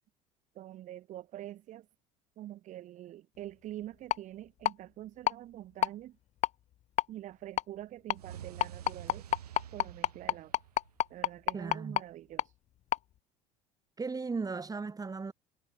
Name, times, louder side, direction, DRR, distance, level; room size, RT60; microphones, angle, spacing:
voice 1, 0.6-1.8 2.4-6.1 7.1-9.3 9.7-10.5 11.1-12.4, right 13 dB, 40° right, 0.7 m, -45 dB
sound 1, 4.1-4.2 4.6-4.7 5.3-5.4 5.8-5.9 6.4-6.5 7.0-7.1 7.6-7.7 8.1-8.2 8.6-12.0 12.4-12.5 12.9-13.0, left 12 dB, 35° left, 0.6 m, -28 dB
sound 2, 8.1-11.3, right 10 dB, 75° right, 4.1 m, -48 dB
voice 2, 11.5-12.0 14.0-15.3, right 4 dB, 20° right, 2.7 m, -36 dB
figure-of-eight pair, 70°, 20 cm